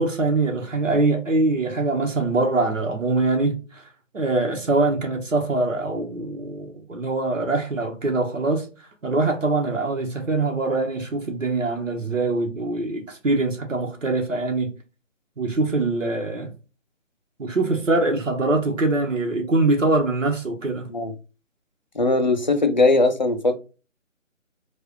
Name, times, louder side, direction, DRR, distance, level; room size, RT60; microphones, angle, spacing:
voice 1, 0.0-3.8 4.1-8.7 9.0-14.7 15.4-16.5 17.4-20.9, right 2 dB, 75° right, 1.4 m, -23 dB
voice 2, 22.0-23.6, left 2 dB, 35° left, 0.5 m, -19 dB
4.7 x 2.5 x 3.1 m
figure-of-eight pair, 160°, 39 cm